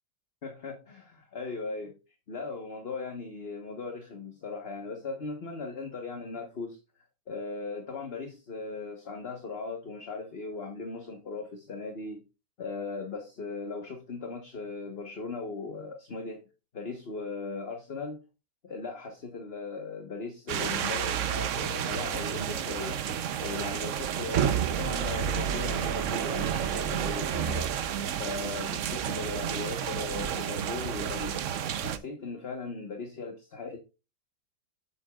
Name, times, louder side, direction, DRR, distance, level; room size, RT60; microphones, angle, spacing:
voice 1, 0.4-1.9 2.3-6.8 7.3-12.2 12.6-16.4 16.7-18.2 18.6-23.0 23.4-27.8 28.2-33.8, left 4 dB, 35° left, 1.2 m, -38 dB
sound 1, 20.5-32.0, right 9 dB, 65° right, 0.7 m, -30 dB
8.1 x 7.8 x 2.3 m
omnidirectional pair, 2.0 m